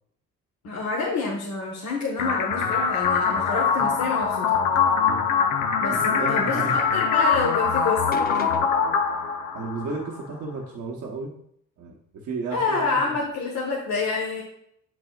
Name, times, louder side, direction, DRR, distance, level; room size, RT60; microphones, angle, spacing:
voice 1, 0.6-4.6 5.8-8.5 12.5-14.4, left 4 dB, 70° left, -3 dB, 1.3 m, -28 dB
sound 1, 2.2-10.2, left 6 dB, 90° left, 0.7 m, -23 dB
voice 2, 5.0-5.3 5.9-6.8 9.5-11.3 11.8-12.0 12.2-13.0, right 3 dB, 75° right, -2 dB, 1.1 m, -33 dB
sound 2, 8.1-9.1, left 6 dB, 30° left, 0.6 m, -35 dB
7.7 x 6.1 x 2.4 m, 0.71 s
cardioid pair, 90°, 30 cm